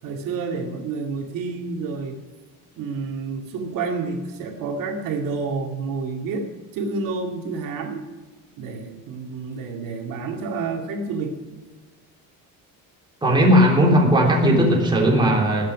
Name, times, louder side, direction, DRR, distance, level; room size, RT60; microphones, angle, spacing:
voice 1, 0.0-2.2 2.8-6.5 6.7-8.1 8.6-11.6, right 4 dB, 70° right, 2 dB, 2.2 m, -29 dB
voice 2, 13.2-15.7, equal, 15° right, -2 dB, 3.3 m, -17 dB
20.0 x 8.5 x 6.1 m, 1.3 s
cardioid pair, 165°, 35 cm